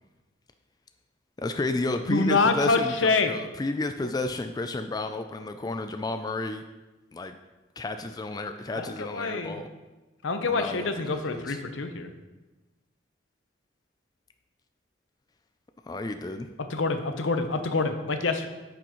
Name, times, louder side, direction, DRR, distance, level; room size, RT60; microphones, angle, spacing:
voice 1, 1.4-6.6 7.1-7.4 7.8-9.7 10.4-11.6 15.9-16.5, left 2 dB, 20° left, 7 dB, 0.3 m, -31 dB
voice 2, 2.1-3.3 8.7-9.6 10.2-12.1 16.7-18.5, left 3 dB, 85° left, 7 dB, 0.8 m, -26 dB
9.6 x 7.1 x 3.0 m, 1.1 s
head